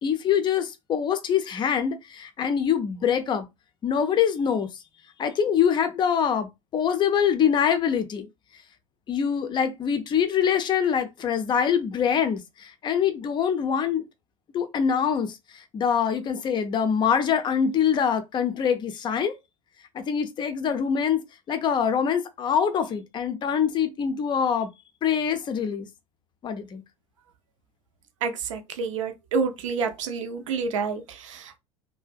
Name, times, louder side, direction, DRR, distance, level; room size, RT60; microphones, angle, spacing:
voice 1, 0.0-3.5 3.8-4.8 5.2-8.3 9.1-14.0 14.5-19.3 19.9-21.2 21.5-24.7 25.0-25.9 26.4-26.8, left 7 dB, 25° left, 0.5 m, -24 dB
voice 2, 28.2-31.6, right 5 dB, 65° right, 0.5 m, -29 dB
2.5 x 2.1 x 2.3 m
figure-of-eight pair, 75°, 17 cm